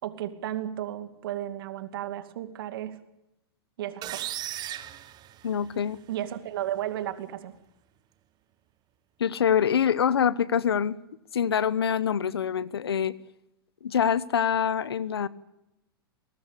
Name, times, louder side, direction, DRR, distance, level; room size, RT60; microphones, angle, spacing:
voice 1, 0.0-3.0 3.8-4.4 6.1-7.5, right 12 dB, 65° right, 9 dB, 2.5 m, -34 dB
sound 1, 4.0-6.0, right 13 dB, 30° right, 1.2 m, -36 dB
voice 2, 5.4-6.0 9.2-11.0 11.3-13.1 13.8-15.3, left 8 dB, 85° left, 19 dB, 1.0 m, -25 dB
21.5 x 19.0 x 8.4 m, 0.89 s
hypercardioid pair, 115°, 13 cm